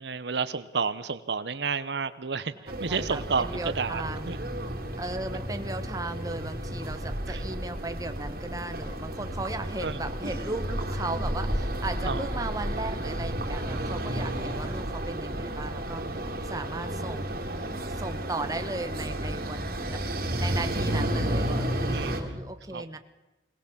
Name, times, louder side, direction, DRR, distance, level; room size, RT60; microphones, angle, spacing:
voice 1, 0.0-3.5 3.7-4.4 7.3-7.4 9.8-10.0 12.0-12.3 21.9-22.4 22.7-22.8, right 5 dB, 75° right, 13 dB, 0.9 m, -31 dB
sound 1, 2.7-22.2, right 1 dB, 55° right, 3.8 m, -32 dB
voice 2, 2.9-4.4 5.0-20.0 20.4-23.0, right 2 dB, 20° right, 7 dB, 1.3 m, -36 dB
22.0 x 19.0 x 7.3 m, 1.0 s
head